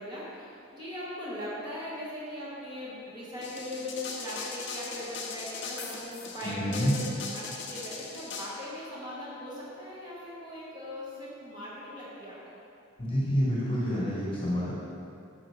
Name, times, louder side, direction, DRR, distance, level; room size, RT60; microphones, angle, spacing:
voice 1, 0.0-12.6, left 1 dB, 20° right, -8 dB, 1.6 m, -39 dB
sound 1, 3.4-8.5, left 5 dB, 55° left, 0.8 m, -39 dB
voice 2, 6.4-6.9 13.0-14.7, equal, 25° left, -7 dB, 1.4 m, -28 dB
8.8 x 6.1 x 3.3 m, 2.5 s
head